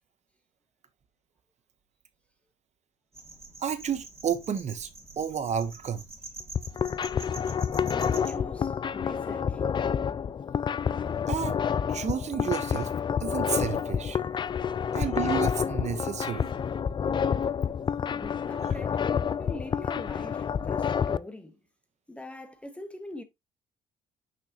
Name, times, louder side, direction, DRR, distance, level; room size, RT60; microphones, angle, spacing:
sound 1, 3.1-8.3, right 3 dB, 15° right, 2.7 m, -46 dB
voice 1, 3.6-4.9 5.2-6.0 11.3-11.6 11.9-12.9 13.2-14.2 14.9-16.6 18.6-18.7, right 8 dB, 40° right, 1.2 m, -31 dB
sound 2, 6.4-21.2, left 7 dB, 30° left, 0.3 m, -29 dB
voice 2, 7.9-9.6 18.1-19.0 19.4-21.6 22.1-23.2, left 1 dB, 5° left, 1.4 m, -42 dB
6.3 x 5.7 x 3.0 m
cardioid pair, 110°, 17 cm